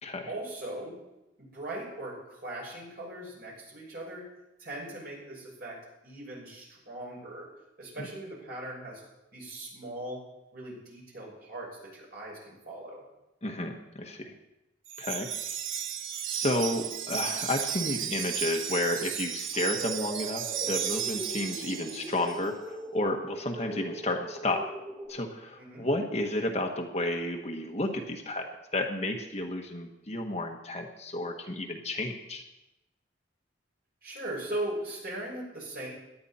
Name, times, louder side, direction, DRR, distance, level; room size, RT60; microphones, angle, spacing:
voice 1, 0.3-1.0 1.4-4.3 4.6-7.5 7.8-9.0 9.3-10.2 10.5-13.0 25.6-25.9 34.0-35.9, right 1 dB, 50° right, -3 dB, 6.1 m, -39 dB
voice 2, 13.4-14.3 15.0-15.3 16.3-24.7 25.1-32.4, left 1 dB, 35° left, 2 dB, 1.3 m, -32 dB
Wind chime, 14.9-22.4, right 9 dB, 75° right, 0.7 m, -34 dB
sound 1, 19.8-25.1, right 1 dB, 15° right, 5.2 m, -40 dB
18.0 x 11.5 x 4.3 m, 0.93 s
head